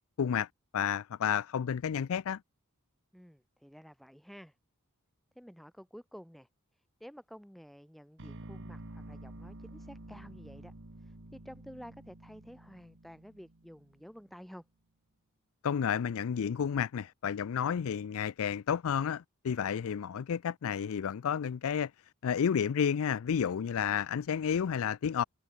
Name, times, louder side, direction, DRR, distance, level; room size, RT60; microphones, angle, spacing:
voice 1, 0.2-0.5 0.7-2.4 15.6-21.9 22.2-25.2, left 7 dB, 70° left, 0.4 m, -31 dB
voice 2, 3.1-4.5 5.3-6.5 6.7-10.7 11.0-14.6, equal, ahead, 1.5 m, -51 dB
sound 1, 8.2-14.2, right 1 dB, 60° right, 1.8 m, -49 dB
head